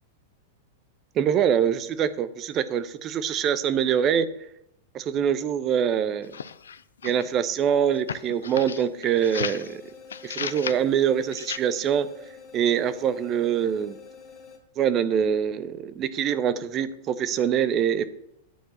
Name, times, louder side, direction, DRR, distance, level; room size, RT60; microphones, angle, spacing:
voice 1, 1.2-4.3 4.9-6.3 7.0-9.8 10.2-12.1 12.5-14.0 14.8-18.1, right 8 dB, 35° right, 13 dB, 0.7 m, -24 dB
sound 1, 6.2-7.3 8.0-9.7 10.1-10.8 11.3-11.6, left 7 dB, 75° left, 0.4 m, -34 dB
sound 2, 9.2-14.6, left 5 dB, 25° left, 2.0 m, -47 dB
9.2 x 4.5 x 7.2 m, 0.80 s
figure-of-eight pair, 100°, 0 cm